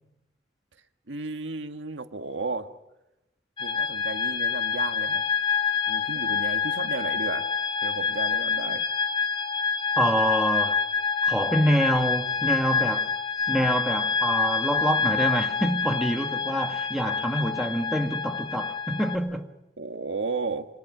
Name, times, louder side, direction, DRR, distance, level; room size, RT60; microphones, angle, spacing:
voice 1, 1.1-2.7 3.6-5.2 5.9-7.5 7.8-8.8 19.8-20.7, right 3 dB, 80° right, 1.7 m, -33 dB
sound 1, 3.6-19.2, left 5 dB, 30° left, 4.0 m, -27 dB
voice 2, 10.0-10.8 11.2-13.1 13.5-19.5, equal, ahead, 1.5 m, -26 dB
27.5 x 25.5 x 6.2 m
head